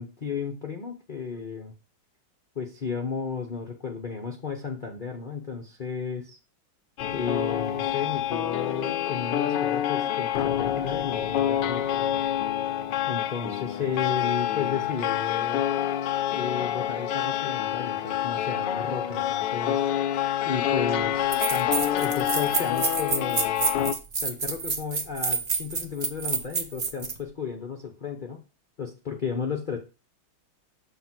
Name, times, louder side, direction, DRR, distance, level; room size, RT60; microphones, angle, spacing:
voice 1, 0.0-1.7 2.5-6.4 7.1-12.3 13.1-15.6 16.3-19.9 20.4-21.2 21.5-23.7 24.2-28.4 28.8-29.8, left 6 dB, 55° left, 3 dB, 0.5 m, -33 dB
sound 1, 7.0-23.9, left 11 dB, 75° left, 1.1 m, -27 dB
sound 2, 20.7-20.8 21.3-27.2, right 4 dB, 75° right, 0.3 m, -28 dB
7.0 x 3.4 x 5.9 m, 0.30 s
omnidirectional pair, 2.2 m